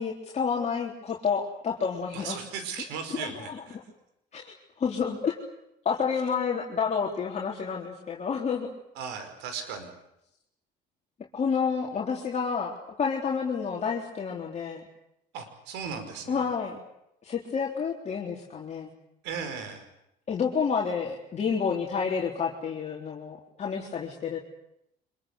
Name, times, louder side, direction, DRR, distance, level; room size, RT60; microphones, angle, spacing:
voice 1, 0.0-2.4 4.3-5.3 5.9-8.7 11.3-14.8 16.3-16.8 17.2-18.9 20.3-24.4, left 6 dB, 40° left, -2 dB, 3.9 m, -29 dB
voice 2, 2.1-3.9 8.9-9.9 15.3-16.6 19.2-19.9, right 6 dB, 85° right, 9 dB, 5.3 m, -37 dB
25.5 x 22.5 x 8.2 m, 0.81 s
cardioid pair, 105°, 18 cm